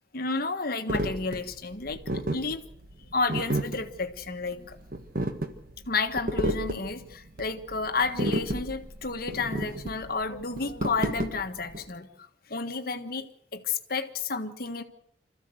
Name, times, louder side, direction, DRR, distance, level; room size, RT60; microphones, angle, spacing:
voice 1, 0.1-2.6 3.1-4.8 5.9-12.1 12.5-13.3 13.5-14.8, left 4 dB, 55° left, 8 dB, 1.6 m, -31 dB
sound 1, 0.9-11.8, right 1 dB, 55° right, 1.6 m, -32 dB
26.0 x 14.5 x 7.9 m, 0.73 s
head